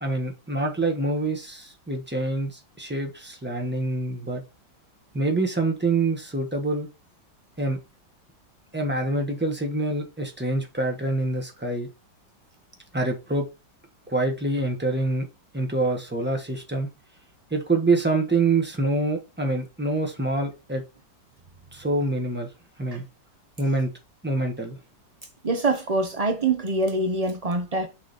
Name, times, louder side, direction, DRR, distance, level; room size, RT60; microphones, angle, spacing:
voice 1, 0.0-4.4 5.1-6.9 7.6-7.8 8.7-11.9 12.9-13.4 14.1-15.3 15.5-16.9 17.5-20.8 21.7-22.5 22.8-23.0 23.6-23.9 24.2-24.8, right 2 dB, 5° right, 1.1 m, -26 dB
voice 2, 25.4-27.9, right 2 dB, 90° right, 0.3 m, -24 dB
6.3 x 4.0 x 4.2 m
omnidirectional pair, 2.0 m